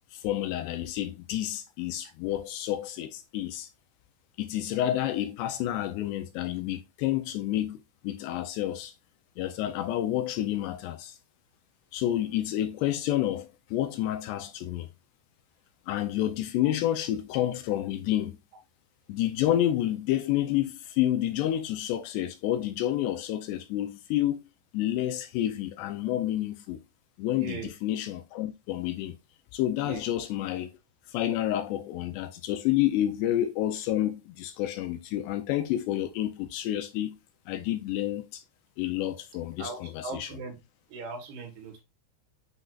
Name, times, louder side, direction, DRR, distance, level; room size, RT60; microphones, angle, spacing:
voice 1, 0.1-3.7 4.4-8.9 9.4-11.2 11.9-14.9 15.9-18.4 19.1-24.4 24.7-26.8 27.2-29.2 29.5-30.7 31.1-37.2 37.5-38.4 38.8-40.3, left 13 dB, 80° left, 2.6 m, -29 dB
voice 2, 27.4-27.7 29.8-30.0 39.6-40.6 40.9-41.8, right 4 dB, 65° right, 3.4 m, -39 dB
7.9 x 6.1 x 2.4 m
omnidirectional pair, 5.2 m